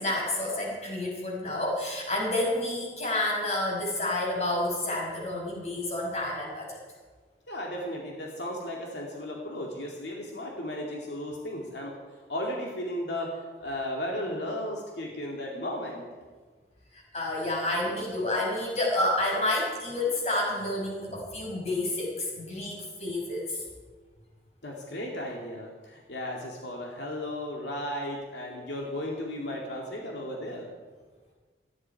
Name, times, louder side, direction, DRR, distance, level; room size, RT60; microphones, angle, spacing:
voice 1, 0.0-6.8 16.9-23.6, left 1 dB, 40° left, -3 dB, 5.7 m, -29 dB
voice 2, 7.5-12.0 12.3-16.1 24.6-30.7, left 1 dB, 85° left, -1 dB, 2.5 m, -35 dB
18.5 x 14.5 x 4.7 m, 1.4 s
head